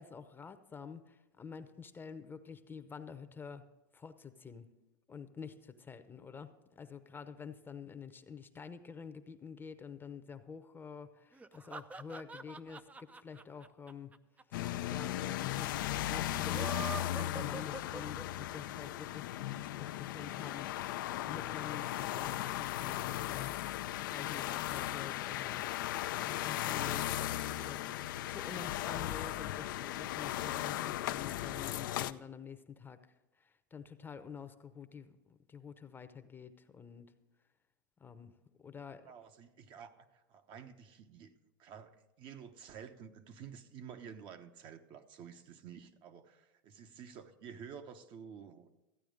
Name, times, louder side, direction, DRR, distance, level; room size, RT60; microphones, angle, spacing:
voice 1, 0.0-3.7 3.9-4.7 5.1-14.1 14.9-23.5 23.9-25.9 26.2-27.1 27.6-27.9 28.3-33.0 33.4-37.1 38.0-38.3 38.6-39.1, left 6 dB, 20° left, 10 dB, 0.8 m, -48 dB
sound 1, 11.3-14.7 15.0-15.1 15.3-15.4 16.3-18.5, right 4 dB, 15° right, 0.5 m, -45 dB
sound 2, 14.5-32.1, left 14 dB, 75° left, 0.5 m, -37 dB
voice 2, 39.0-41.3 41.6-48.7, right 7 dB, 45° right, 7 dB, 1.0 m, -51 dB
14.0 x 9.1 x 5.1 m, 1.0 s
hypercardioid pair, 105°, 11 cm